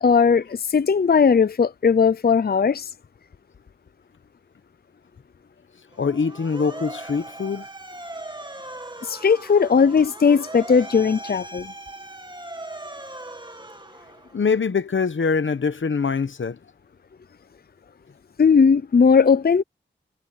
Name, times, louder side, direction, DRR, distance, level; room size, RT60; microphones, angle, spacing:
voice 1, 0.0-2.9 9.0-11.7 18.4-19.6, left 6 dB, 55° left, 0.5 m, -18 dB
Motor vehicle (road) / Siren, 5.9-14.5, right 2 dB, 25° right, 2.0 m, -39 dB
voice 2, 6.0-7.7 14.3-16.6, left 5 dB, 90° left, 1.0 m, -23 dB
wide cardioid pair, 75°, 19 cm